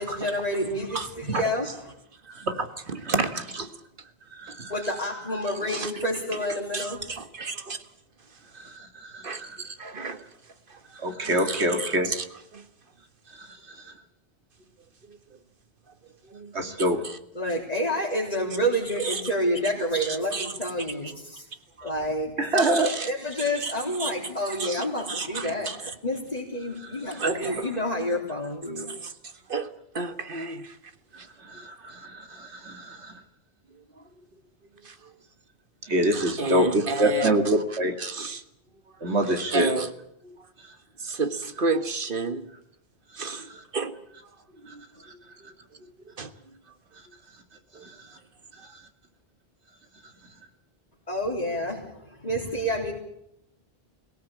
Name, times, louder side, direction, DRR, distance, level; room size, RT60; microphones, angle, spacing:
voice 1, 0.0-1.8 4.7-7.0 17.3-21.5 21.8-25.7 26.0-28.9 51.1-52.9, equal, 40° left, -5 dB, 3.9 m, -29 dB
voice 2, 2.3-3.1 4.3-4.7 8.5-9.6 10.9-12.1 13.3-13.9 16.5-17.0 22.4-22.9 26.8-27.2 31.4-33.2 35.8-38.0 39.0-39.7 43.2-43.6 44.7-44.8 45.0-45.1 47.8-48.1, right 1 dB, 85° right, 6 dB, 2.6 m, -27 dB
voice 3, 3.1-3.7 4.5-4.6 5.6-5.9 6.7-7.8 9.2-10.2 10.7-10.8 11.2-12.2 12.5-12.6 15.1-15.2 16.2-16.7 17.0-17.2 19.0-19.2 20.0-20.5 21.8-21.9 22.6-23.1 23.4-23.7 24.0-24.1 24.4-25.9 27.2-27.8 28.8-29.1 29.5-30.8 31.2-31.3 34.8-35.1 36.1-37.4 38.0-38.4 39.3-39.9 40.2-40.4 41.0-42.5 43.1-44.1 44.6-45.5 46.2-46.3 47.7-47.8, right 4 dB, 55° right, 10 dB, 1.7 m, -32 dB
22.5 x 18.0 x 8.6 m, 0.79 s
omnidirectional pair, 1.1 m